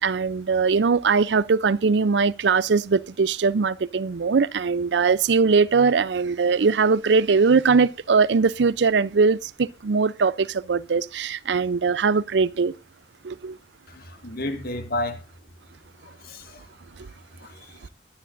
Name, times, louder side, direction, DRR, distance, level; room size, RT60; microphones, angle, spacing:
voice 1, 0.0-12.7 13.2-13.6, right 5 dB, 75° right, 0.5 m, -21 dB
voice 2, 13.9-15.2 16.0-16.7 17.4-17.9, left 1 dB, 55° left, 2.0 m, -32 dB
21.5 x 10.0 x 2.5 m
head